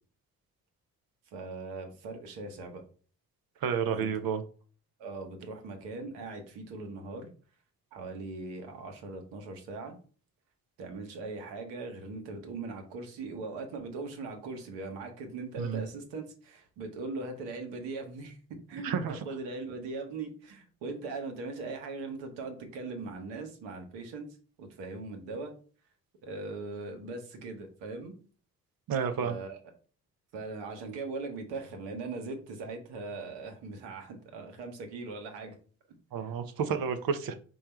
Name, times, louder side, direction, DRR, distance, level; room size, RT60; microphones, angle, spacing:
voice 1, 1.3-2.8 3.9-4.1 5.0-7.3 7.9-10.0 10.8-18.4 18.7-24.3 24.6-25.5 26.2-28.1 29.2-29.6 30.3-35.6 36.2-36.3, right 3 dB, 70° right, 1.1 m, -40 dB
voice 2, 3.6-4.4 15.6-15.8 18.8-19.2 28.9-29.4 36.1-37.3, right 6 dB, 50° right, 0.7 m, -30 dB
4.4 x 2.4 x 4.3 m
hypercardioid pair, 40°, 45 cm